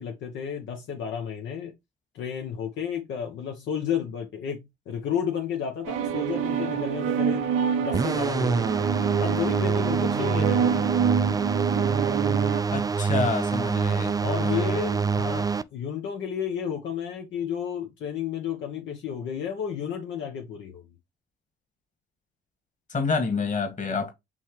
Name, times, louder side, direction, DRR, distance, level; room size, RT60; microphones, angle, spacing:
voice 1, 0.0-1.7 2.1-7.5 7.8-11.1 13.5-13.7 14.2-20.8, left 8 dB, 75° left, 0.9 m, -32 dB
sound 1, 5.9-12.6, right 7 dB, 90° right, 0.6 m, -27 dB
sound 2, 7.9-15.6, right 5 dB, 20° right, 0.3 m, -26 dB
voice 2, 12.7-14.8 22.9-24.1, left 4 dB, 40° left, 1.8 m, -28 dB
5.4 x 3.0 x 3.0 m
supercardioid pair, 65°, 19 cm